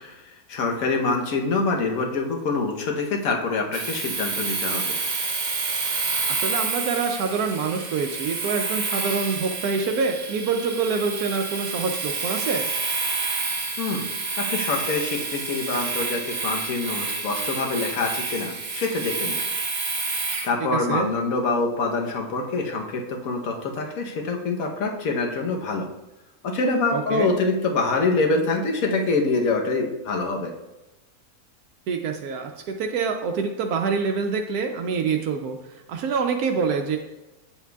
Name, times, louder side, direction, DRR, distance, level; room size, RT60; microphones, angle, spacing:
voice 1, 0.0-5.0 13.8-14.1 14.4-19.4 20.4-25.9 26.4-30.5, left 3 dB, 65° left, 2 dB, 1.3 m, -25 dB
Domestic sounds home sounds, 3.7-20.5, right 4 dB, 40° right, 0.6 m, -29 dB
voice 2, 6.3-12.7 20.7-21.1 26.9-27.3 31.9-37.0, right 5 dB, 80° right, 4 dB, 1.1 m, -26 dB
8.6 x 7.2 x 2.3 m, 1.0 s
omnidirectional pair, 1.6 m